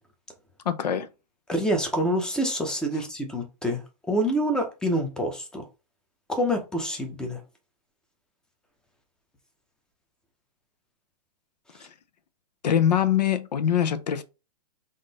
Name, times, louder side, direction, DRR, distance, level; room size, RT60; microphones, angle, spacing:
voice 1, 0.7-1.1 12.6-14.2, left 9 dB, 85° left, 0.6 m, -23 dB
voice 2, 1.5-3.8 4.1-5.7 6.3-7.4, equal, 5° left, 0.6 m, -26 dB
3.7 x 2.6 x 3.9 m
hypercardioid pair, 145°, 21 cm